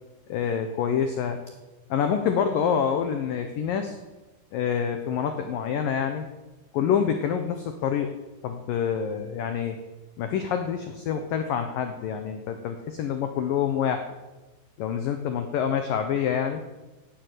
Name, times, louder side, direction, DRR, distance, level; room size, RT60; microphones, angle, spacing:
voice 1, 0.3-1.4 1.9-4.0 4.5-6.3 6.7-8.1 8.4-9.8 10.2-14.1 14.8-16.6, left 8 dB, 85° left, 7 dB, 1.9 m, -27 dB
17.0 x 9.9 x 8.1 m, 1.1 s
omnidirectional pair, 5.6 m